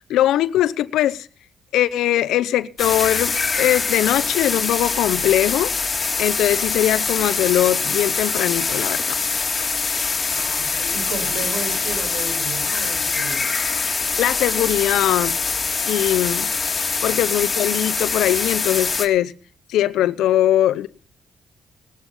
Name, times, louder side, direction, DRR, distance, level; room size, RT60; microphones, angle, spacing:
voice 1, 0.1-1.3 1.7-5.7 6.2-9.2 14.2-15.4 15.7-16.5 17.0-19.3 19.7-20.9, left 13 dB, 85° left, 0.8 m, -20 dB
sound 1, 2.8-19.1, left 4 dB, 30° left, 2.8 m, -23 dB
voice 2, 10.3-13.6 17.0-17.2, right 4 dB, 85° right, 5.4 m, -33 dB
18.5 x 12.0 x 5.6 m
cardioid pair, 90°, 0 cm